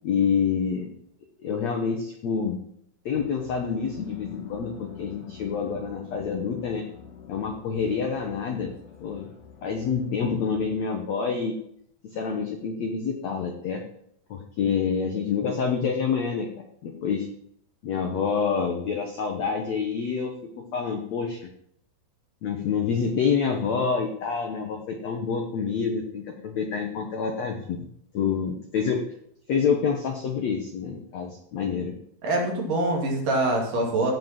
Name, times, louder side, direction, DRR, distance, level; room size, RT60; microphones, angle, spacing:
voice 1, 0.0-0.9 1.4-2.6 3.0-6.8 7.3-8.7 9.0-9.3 9.6-11.5 12.1-13.8 14.3-16.5 16.8-17.3 17.8-20.3 20.7-21.5 22.4-27.8 28.1-29.0 29.5-31.9, left 6 dB, 80° left, 3 dB, 1.5 m, -27 dB
sound 1, 3.1-10.8, left 8 dB, 55° left, 2.7 m, -46 dB
voice 2, 32.2-34.1, right 2 dB, 55° right, 0 dB, 3.8 m, -24 dB
16.5 x 5.7 x 5.9 m, 0.69 s
omnidirectional pair, 5.0 m